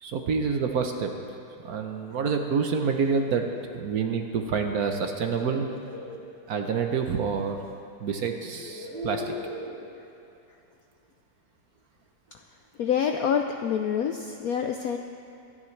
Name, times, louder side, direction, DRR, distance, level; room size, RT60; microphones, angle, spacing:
voice 1, 0.0-1.1 1.6-3.4 3.7-5.7 6.5-7.6 8.0-9.3, right 5 dB, 60° right, 4 dB, 1.1 m, -27 dB
sound 1, 4.9-6.2 7.6-7.7 8.4-9.8, left 2 dB, 10° left, 3.2 m, -39 dB
voice 2, 12.8-15.0, left 7 dB, 75° left, 5 dB, 0.8 m, -26 dB
25.0 x 9.8 x 3.3 m, 2.7 s
omnidirectional pair, 2.1 m